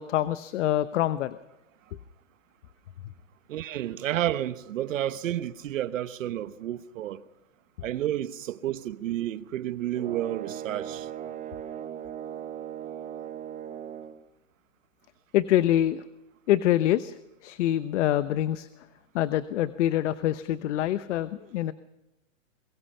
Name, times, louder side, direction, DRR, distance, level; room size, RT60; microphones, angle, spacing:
voice 1, 0.0-1.4 15.3-16.0 16.5-18.7 19.1-21.7, left 12 dB, 65° left, 1.0 m, -25 dB
voice 2, 3.5-7.2 7.8-11.1, right 12 dB, 80° right, 1.2 m, -31 dB
sound 1, 9.9-14.2, right 10 dB, 20° right, 1.2 m, -38 dB
26.0 x 22.5 x 5.6 m
hypercardioid pair, 140°, 38 cm